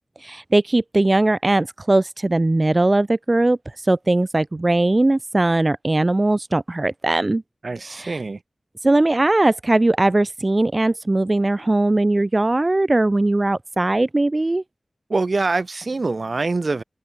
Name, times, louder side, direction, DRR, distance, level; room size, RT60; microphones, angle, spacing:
voice 1, 0.2-7.4 7.8-8.2 8.8-14.6, right 2 dB, 35° right, 2.0 m, -19 dB
voice 2, 7.6-8.4 15.1-16.8, right 3 dB, 60° right, 4.4 m, -24 dB
cardioid pair, 50°, 0 cm